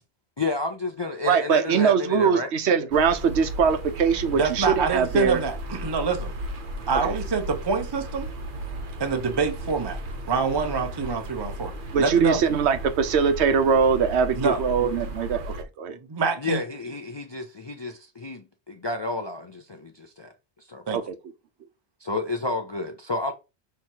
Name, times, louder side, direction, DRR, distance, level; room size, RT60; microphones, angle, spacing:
voice 1, 0.4-2.5 16.4-20.3 20.6-20.8 22.0-23.3, left 3 dB, 45° left, 0.3 m, -31 dB
voice 2, 1.3-5.4 7.0-7.2 11.9-16.0 20.9-21.1, right 6 dB, 85° right, 1.0 m, -22 dB
sound 1, 2.9-15.6, right 1 dB, 55° right, 0.8 m, -35 dB
voice 3, 4.3-6.3 6.9-8.3 9.0-10.0 10.3-11.7 12.0-12.4 14.4-14.6 16.1-16.6 20.9-21.0, right 4 dB, 30° right, 0.5 m, -26 dB
5.8 x 3.1 x 2.7 m
omnidirectional pair, 1.1 m